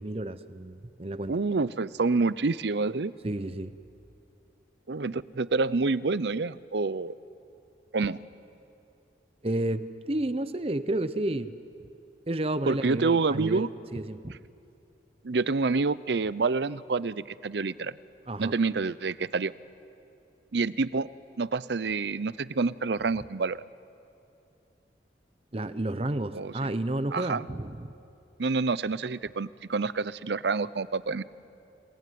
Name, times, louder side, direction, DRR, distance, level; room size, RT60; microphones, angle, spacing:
voice 1, 0.0-1.4 3.2-3.7 9.4-11.5 12.3-14.4 18.3-18.5 25.5-27.9, right 1 dB, 30° right, 13 dB, 0.8 m, -31 dB
voice 2, 1.3-3.1 4.9-7.1 7.9-8.2 12.7-13.7 15.2-17.9 18.4-19.5 20.5-21.1 21.4-23.6 26.3-26.5 27.1-27.4 28.4-31.2, right 4 dB, 70° right, 17 dB, 0.6 m, -27 dB
29.0 x 19.0 x 9.4 m, 2.7 s
head